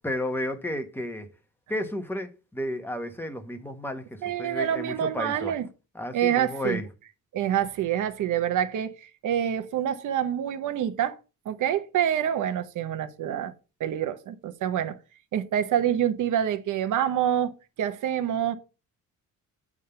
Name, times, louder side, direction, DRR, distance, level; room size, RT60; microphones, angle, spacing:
voice 1, 0.0-1.3 1.7-5.5 5.9-6.9, left 1 dB, 5° left, 1.2 m, -32 dB
voice 2, 4.2-5.7 6.1-6.8 7.3-11.2 11.5-13.5 13.8-15.0 15.3-18.6, right 10 dB, 65° right, 1.0 m, -27 dB
8.5 x 3.6 x 6.8 m
cardioid pair, 125°, 33 cm